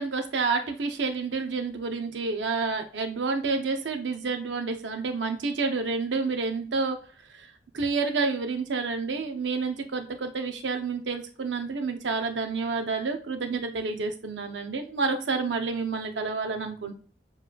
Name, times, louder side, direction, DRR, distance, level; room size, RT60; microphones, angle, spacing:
voice 1, 0.0-7.0 7.3-7.5 7.7-16.9, right 4 dB, 85° right, 6 dB, 0.6 m, -29 dB
6.7 x 3.1 x 2.3 m, 0.41 s
head